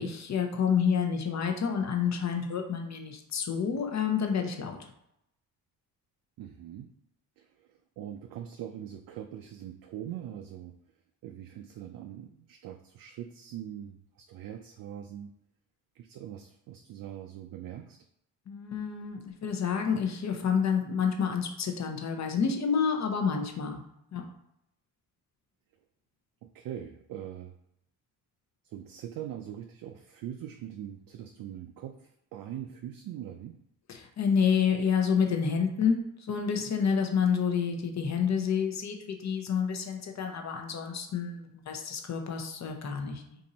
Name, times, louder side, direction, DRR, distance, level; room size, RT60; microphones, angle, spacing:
voice 1, 0.0-4.8 18.5-23.8 24.1-24.2 33.9-43.4, left 6 dB, 40° left, 4 dB, 0.8 m, -29 dB
voice 2, 6.4-6.9 7.4-10.7 11.2-15.3 15.9-18.0 26.4-27.5 28.6-33.6, right 10 dB, 55° right, 5 dB, 0.5 m, -42 dB
2.6 x 2.6 x 4.1 m, 0.78 s
supercardioid pair, 65°, 42 cm